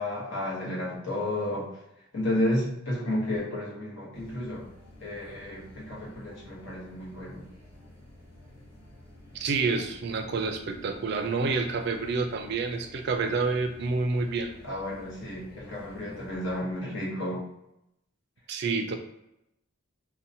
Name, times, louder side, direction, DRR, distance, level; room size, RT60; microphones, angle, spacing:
voice 1, 0.0-1.7 2.1-4.7 5.0-7.4 14.6-17.5, left 1 dB, 60° left, -5 dB, 0.9 m, -32 dB
sound 1, 4.1-16.6, left 1 dB, 25° left, 0.9 m, -51 dB
voice 2, 9.3-14.5 18.5-18.9, right 4 dB, 55° right, 6 dB, 0.3 m, -28 dB
2.8 x 2.1 x 2.6 m, 0.84 s
head